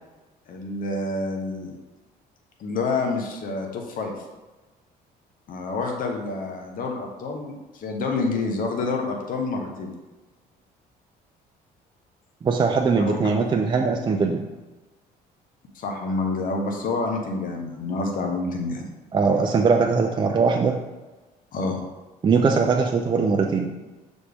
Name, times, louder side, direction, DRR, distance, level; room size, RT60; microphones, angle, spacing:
voice 1, 0.5-1.8 2.6-4.1 5.5-9.9 13.1-13.2 15.7-18.8 21.5-21.8, left 3 dB, 55° left, 2 dB, 1.1 m, -28 dB
voice 2, 12.4-14.4 19.1-20.8 22.2-23.7, right 4 dB, 25° right, 3 dB, 0.5 m, -21 dB
6.4 x 4.2 x 3.5 m, 1.2 s
cardioid pair, 110°, 17 cm